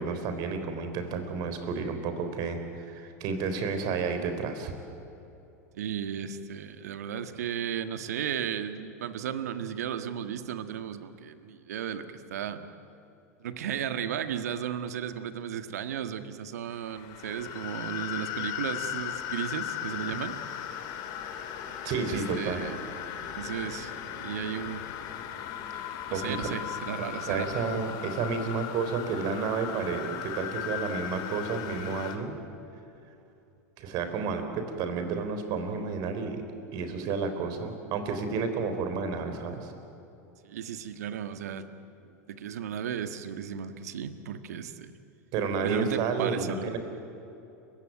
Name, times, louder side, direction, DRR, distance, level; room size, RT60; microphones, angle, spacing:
voice 1, 0.0-4.7 21.8-22.7 25.7-26.5 27.3-32.3 33.8-36.4 36.7-39.7 45.3-46.8, right 5 dB, 50° right, 7 dB, 4.0 m, -31 dB
voice 2, 5.7-12.6 13.4-20.3 22.1-22.8 23.2-24.8 26.1-27.6 40.4-41.6 42.0-44.9 45.6-46.7, right 9 dB, 75° right, 10 dB, 1.6 m, -35 dB
sound 1, 16.8-32.2, left 10 dB, 50° left, 2.6 m, -37 dB
29.5 x 16.5 x 9.4 m, 2.8 s
hypercardioid pair, 90°, 9 cm